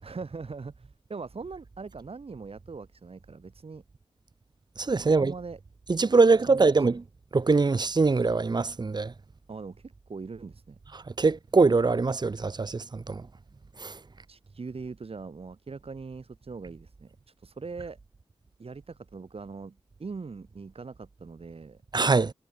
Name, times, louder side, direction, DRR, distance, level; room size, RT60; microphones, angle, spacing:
voice 1, 0.0-3.8 5.0-5.6 6.5-7.0 9.5-10.8 14.3-18.0 18.6-21.8, right 4 dB, 60° right, 3.1 m, -41 dB
voice 2, 4.8-5.3 5.9-7.0 7.3-9.1 11.2-13.2 13.8-13.9 21.9-22.3, right 4 dB, 40° right, 0.8 m, -23 dB
cardioid pair, 60°, 11 cm